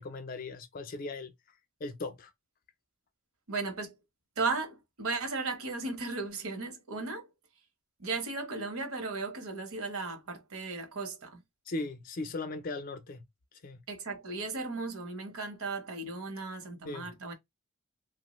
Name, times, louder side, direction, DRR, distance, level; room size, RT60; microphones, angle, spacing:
voice 1, 0.0-1.3 1.8-2.3 11.7-13.2 13.6-13.8 16.8-17.1, left 2 dB, 40° left, 0.4 m, -38 dB
voice 2, 3.5-4.0 4.4-7.3 8.0-11.4 13.9-17.3, right 3 dB, 75° right, 0.8 m, -36 dB
2.9 x 2.0 x 2.9 m
head